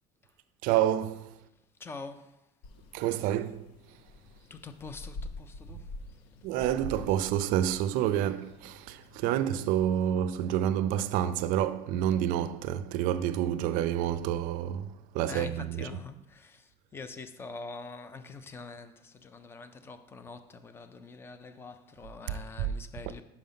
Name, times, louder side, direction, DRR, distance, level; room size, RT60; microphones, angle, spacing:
voice 1, 0.6-1.3 2.9-3.7 6.4-16.0 22.6-22.7, right 11 dB, 65° right, 0.4 m, -28 dB
voice 2, 1.8-2.3 4.5-5.8 15.3-23.2, left 4 dB, 15° left, 0.4 m, -44 dB
sound 1, 2.6-9.9, left 3 dB, 85° left, 0.7 m, -47 dB
5.8 x 5.1 x 5.6 m
cardioid pair, 165°, 15 cm